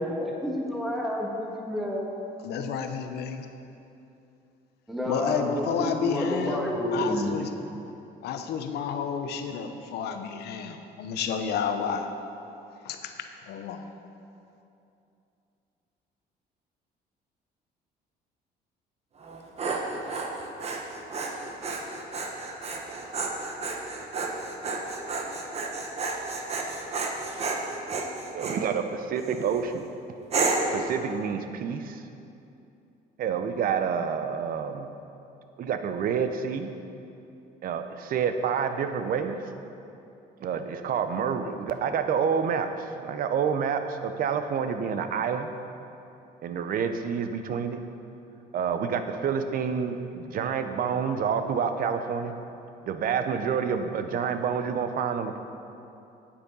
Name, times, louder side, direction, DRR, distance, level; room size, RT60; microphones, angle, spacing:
voice 1, 0.0-2.0 4.9-7.3, equal, ahead, -2 dB, 1.5 m, -29 dB
voice 2, 2.4-3.5 5.0-7.5 8.2-12.1 12.8-13.9, left 7 dB, 75° left, 7 dB, 0.8 m, -31 dB
Dog, 19.2-28.6 29.2-29.6 30.3-30.8, right 3 dB, 40° right, 1.1 m, -31 dB
voice 3, 28.3-29.9 30.7-32.0 33.2-34.9 35.6-36.7 37.6-39.4 40.4-45.5 46.4-47.8 48.5-52.4 52.9-55.4, right 6 dB, 60° right, 8 dB, 0.8 m, -28 dB
8.9 x 8.5 x 5.5 m, 2.7 s
cardioid pair, 110°, 17 cm